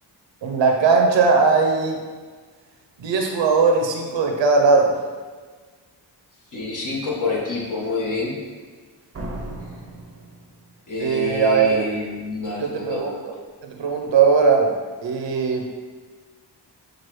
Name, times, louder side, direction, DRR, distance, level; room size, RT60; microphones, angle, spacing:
voice 1, 0.4-2.0 3.0-5.0 11.0-11.9 12.6-13.3 13.6-14.7 15.0-15.6, right 4 dB, 85° right, 2 dB, 0.7 m, -19 dB
voice 2, 6.5-8.4 10.9-13.0, left 3 dB, 45° left, -5 dB, 1.3 m, -27 dB
Slam, 9.1-11.1, right 1 dB, 35° right, 0.6 m, -36 dB
6.1 x 2.4 x 3.1 m, 1.5 s
cardioid pair, 70°, 44 cm